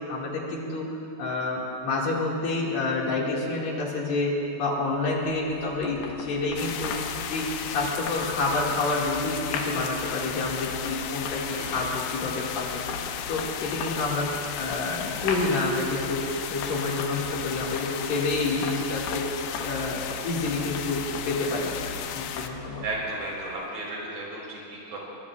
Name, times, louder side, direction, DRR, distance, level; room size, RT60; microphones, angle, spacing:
voice 1, 0.1-0.9 1.2-6.9 7.3-13.0 13.3-16.2 16.5-19.3 19.6-21.7 22.1-22.8, left 3 dB, 50° left, -3 dB, 2.8 m, -28 dB
sound 1, 4.8-23.8, left 4 dB, 70° left, 3.1 m, -39 dB
sound 2, 6.6-22.5, left 9 dB, 85° left, 2.8 m, -35 dB
voice 2, 22.8-25.0, right 2 dB, 50° right, -4 dB, 5.5 m, -34 dB
23.5 x 21.0 x 2.4 m, 2.7 s
omnidirectional pair, 5.0 m